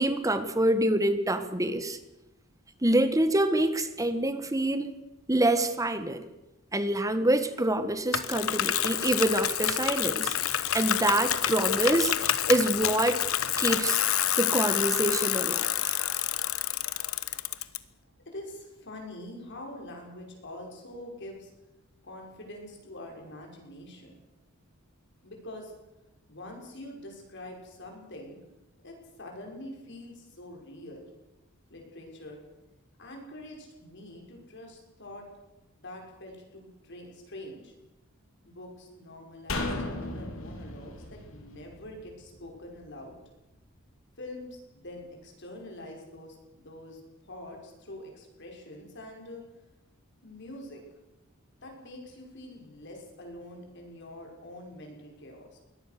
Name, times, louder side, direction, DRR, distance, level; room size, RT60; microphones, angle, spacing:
voice 1, 0.0-2.0 2.8-4.9 5.3-6.2 6.7-13.2 13.6-14.0 14.4-15.9, right 1 dB, 15° right, 10 dB, 1.6 m, -26 dB
Bicycle, 8.1-17.8, left 11 dB, 90° left, 1.1 m, -28 dB
voice 2, 18.3-21.5 22.0-24.2 25.2-25.7 26.3-28.4 28.8-31.1 31.7-32.4 33.0-35.3 35.8-37.7 38.4-39.7 40.0-43.2 44.2-49.4 50.2-50.8 51.6-55.6, left 1 dB, 60° left, 1 dB, 5.8 m, -45 dB
sound 1, 39.5-42.8 43.1-43.2, left 2 dB, 75° left, 3.8 m, -36 dB
22.5 x 18.0 x 6.8 m, 0.97 s
head